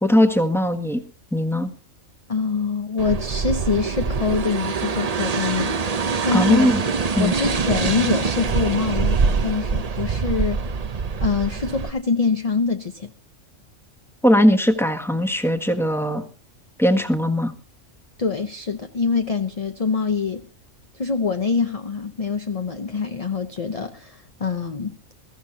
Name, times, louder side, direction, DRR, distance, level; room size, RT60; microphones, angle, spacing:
voice 1, 0.0-1.0 1.3-1.7 6.3-6.8 7.2-7.4 14.2-16.2 16.8-17.5, equal, ahead, 6 dB, 1.5 m, -19 dB
voice 2, 2.3-5.7 6.2-6.7 7.2-10.6 11.2-13.1 18.2-20.5 20.9-24.9, left 5 dB, 35° left, 6 dB, 0.8 m, -24 dB
sound 1, 3.0-11.9, right 5 dB, 35° right, 0.7 m, -24 dB
22.0 x 14.5 x 2.8 m, 0.34 s
omnidirectional pair, 1.3 m